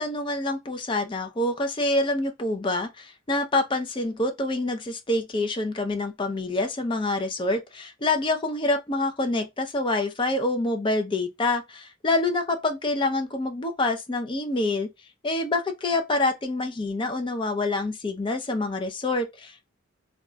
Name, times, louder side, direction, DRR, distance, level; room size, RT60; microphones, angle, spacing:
voice 1, 0.0-14.9 15.2-19.6, left 2 dB, 25° left, 0.5 m, -26 dB
2.3 x 2.2 x 3.8 m
head